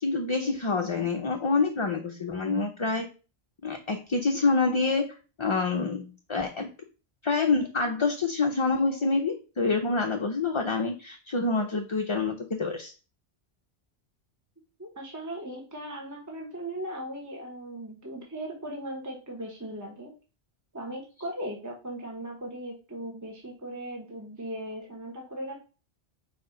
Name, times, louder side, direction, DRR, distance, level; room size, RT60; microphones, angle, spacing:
voice 1, 0.0-3.1 3.6-6.7 7.2-12.9, left 3 dB, 35° left, 3 dB, 0.5 m, -27 dB
voice 2, 14.8-20.1 20.7-25.6, right 1 dB, 15° right, 0 dB, 1.1 m, -38 dB
4.5 x 4.3 x 5.1 m, 0.34 s
omnidirectional pair, 1.1 m